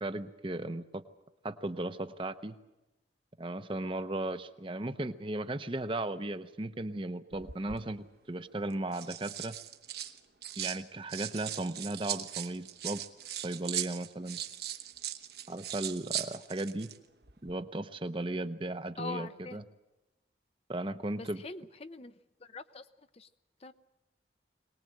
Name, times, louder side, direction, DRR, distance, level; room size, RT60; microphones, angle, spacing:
voice 1, 0.0-1.0 1.4-2.5 3.4-9.6 10.6-13.1 13.3-14.4 15.5-16.9 17.4-19.6 20.7-21.4, right 2 dB, 30° right, 10 dB, 0.8 m, -36 dB
sound 1, 7.3-7.8 8.7-10.8 11.1-17.0 17.2-17.5, right 11 dB, 65° right, 1.1 m, -39 dB
voice 2, 19.0-19.6 21.2-23.3 23.6-23.7, left 3 dB, 35° left, 11 dB, 0.7 m, -44 dB
22.5 x 19.5 x 7.7 m, 1.0 s
head